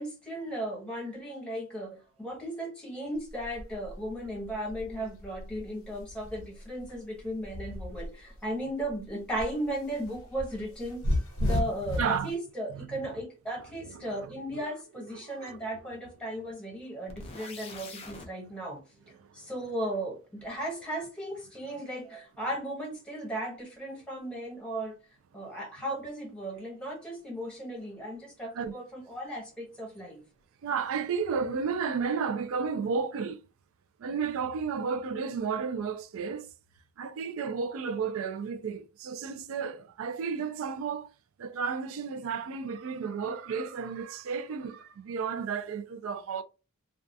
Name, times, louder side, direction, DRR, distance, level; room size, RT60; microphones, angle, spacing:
voice 1, 0.0-18.8 19.3-24.9 25.3-30.2, right 1 dB, 5° left, 0.8 m, -36 dB
sound 1, 3.2-8.4 8.8-12.2, left 1 dB, 90° left, 0.7 m, -34 dB
voice 2, 12.0-12.3 12.7-13.2 13.8-14.7 15.1-15.6 19.2-19.5 28.5-28.7 30.6-33.4 34.0-36.5 37.0-41.1 41.4-46.4, right 5 dB, 65° right, 0.3 m, -33 dB
sound 2, 17.1-18.3, left 3 dB, 25° left, 0.4 m, -44 dB
2.3 x 2.3 x 2.6 m
head